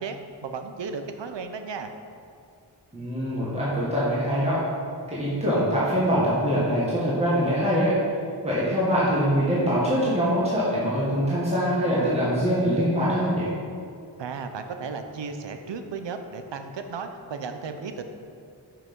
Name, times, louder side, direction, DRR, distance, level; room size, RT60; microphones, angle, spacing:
voice 1, 0.0-1.9 14.2-18.0, right 5 dB, 75° right, 7 dB, 0.9 m, -34 dB
voice 2, 2.9-4.6 5.1-7.9 8.4-13.5, equal, 15° right, -9 dB, 1.9 m, -23 dB
9.6 x 6.0 x 5.5 m, 2.3 s
wide cardioid pair, 150°, 43 cm